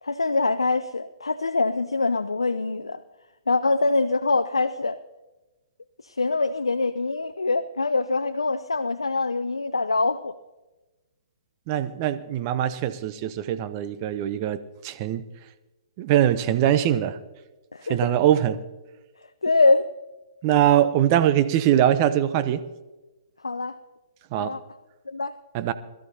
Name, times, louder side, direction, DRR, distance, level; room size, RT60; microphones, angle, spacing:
voice 1, 0.0-3.0 3.5-5.0 6.0-10.3 17.7-18.1 19.4-19.9 23.4-23.8 24.4-24.6 25.1-25.3, left 3 dB, 85° left, 10 dB, 0.5 m, -24 dB
voice 2, 11.7-15.2 16.0-17.2 17.9-18.6 20.4-22.6 24.3-24.5 25.5-25.7, right 11 dB, 35° right, 11 dB, 0.8 m, -22 dB
21.5 x 13.0 x 2.8 m, 1.1 s
figure-of-eight pair, 125°, 3 cm